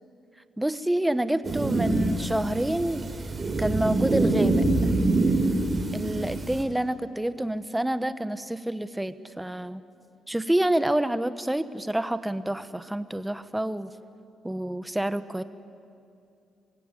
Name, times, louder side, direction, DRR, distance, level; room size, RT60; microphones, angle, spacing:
voice 1, 0.6-3.1 3.6-4.9 5.9-9.8 10.3-13.9 14.4-15.4, right 1 dB, 5° right, 13 dB, 0.9 m, -28 dB
sound 1, 1.4-6.6, right 2 dB, 35° right, 3.4 m, -25 dB
25.0 x 16.5 x 9.7 m, 2.6 s
cardioid pair, 90°, 0 cm